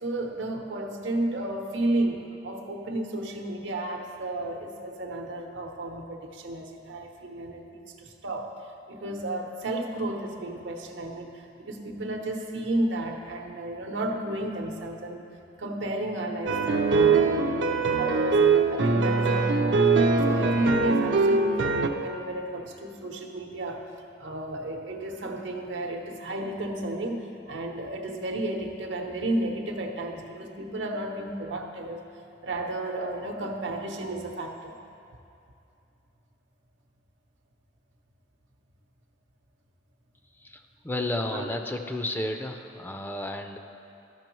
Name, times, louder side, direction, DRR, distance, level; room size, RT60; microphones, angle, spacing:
voice 1, 0.0-8.5 8.9-15.2 15.6-18.4 18.7-19.9 20.3-23.8 24.2-32.0 32.4-34.7 41.3-41.5, right 1 dB, 90° right, 3 dB, 0.8 m, -32 dB
sound 1, 16.5-21.9, right 4 dB, 70° right, 0.5 m, -22 dB
voice 2, 40.8-43.6, left 1 dB, 10° left, 5 dB, 0.4 m, -31 dB
13.0 x 6.0 x 3.1 m, 2.6 s
head